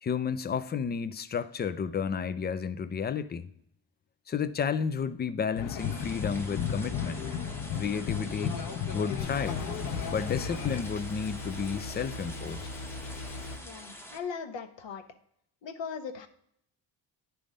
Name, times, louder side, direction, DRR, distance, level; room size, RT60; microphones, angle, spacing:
voice 1, 0.0-3.5 4.3-7.2 7.7-8.6 8.9-9.7 10.1-12.7, left 6 dB, 25° left, 0.3 m, -32 dB
sound 1, 5.6-10.8, left 7 dB, 40° left, 0.9 m, -34 dB
sound 2, 5.8-14.2, left 1 dB, 5° left, 0.8 m, -47 dB
sound 3, 9.2-13.6, left 1 dB, 90° left, 1.4 m, -40 dB
voice 2, 13.6-15.0 15.6-16.3, left 6 dB, 70° left, 0.9 m, -38 dB
9.8 x 3.5 x 5.1 m
cardioid pair, 100°, 47 cm